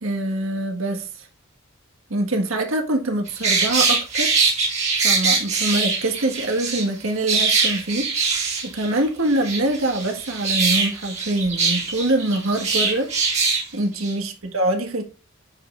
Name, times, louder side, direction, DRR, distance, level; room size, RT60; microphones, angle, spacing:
voice 1, 0.0-1.3 2.1-4.3 5.0-8.4 8.6-13.1 13.7-15.0, right 1 dB, 85° right, 1.7 m, -24 dB
sound 1, 3.3-6.8 7.3-9.0 9.3-13.6 13.9-14.1, right 4 dB, 35° right, 2.3 m, -22 dB
9.4 x 5.4 x 2.5 m
head